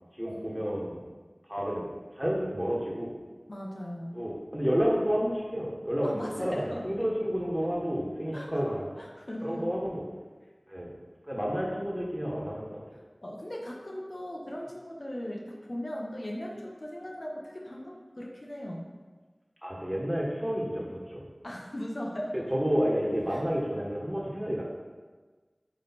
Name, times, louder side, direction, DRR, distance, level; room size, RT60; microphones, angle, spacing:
voice 1, 0.2-1.0 1.5-1.9 2.1-3.1 4.1-8.9 9.4-10.0 10.7-10.9 11.3-12.8 19.6-21.2 22.3-24.6, equal, 10° right, -3 dB, 1.5 m, -30 dB
voice 2, 3.5-4.2 6.0-6.8 8.3-8.5 9.0-9.7 13.2-18.9 21.4-22.5 23.3-23.4, equal, 60° left, -1 dB, 0.9 m, -38 dB
8.7 x 3.2 x 4.2 m, 1.4 s
wide cardioid pair, 40°, 0 cm